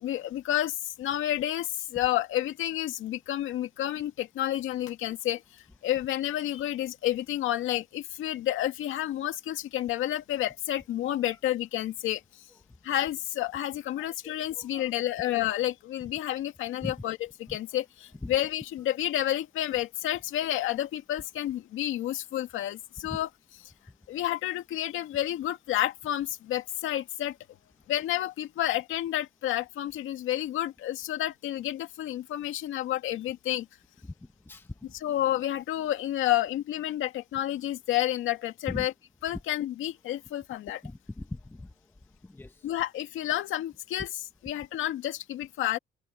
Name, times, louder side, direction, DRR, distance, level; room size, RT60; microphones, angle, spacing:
voice 1, 0.0-12.2 12.8-23.3 24.1-27.4 27.9-33.7 34.9-38.9 39.2-40.8 42.6-44.1 44.4-45.8, left 13 dB, 85° left, 2.1 m, -30 dB
voice 2, 14.0-14.9 16.8-16.9 17.5-17.6 18.2-18.3 23.1-23.2 34.0-34.1 34.5-34.7 38.7-38.9 40.8-41.7 42.2-42.6, left 2 dB, 10° left, 0.9 m, -40 dB
cardioid pair, 90°, 20 cm